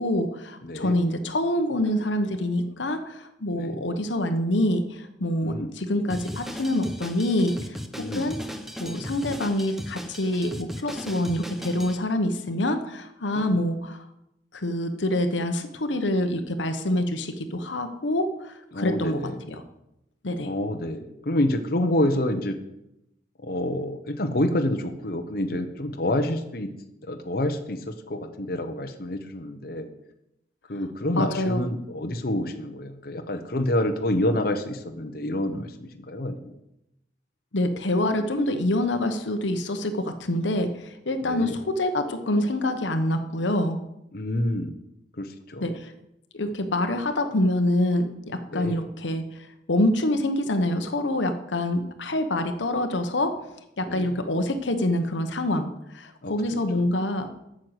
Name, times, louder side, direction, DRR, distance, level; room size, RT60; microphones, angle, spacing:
voice 1, 0.0-7.8 8.1-8.4 8.8-14.0 14.5-19.2 19.5-19.6 20.2-20.5 31.2-31.6 37.5-43.8 45.6-45.9 46.3-53.4 53.8-57.3, left 1 dB, 90° left, 7 dB, 1.0 m, -26 dB
voice 2, 0.6-1.0 3.5-3.8 5.4-5.7 8.0-8.3 8.8-9.1 13.4-13.5 18.7-19.4 20.4-22.6 23.4-26.7 27.1-29.9 30.7-36.5 41.2-41.6 44.1-44.7 45.2-45.7 48.5-48.8 53.9-54.2 56.2-56.6, left 1 dB, 55° left, 6 dB, 0.9 m, -28 dB
Drum kit, 6.1-12.0, equal, ahead, 0.7 m, -37 dB
8.9 x 6.4 x 8.0 m, 0.85 s
head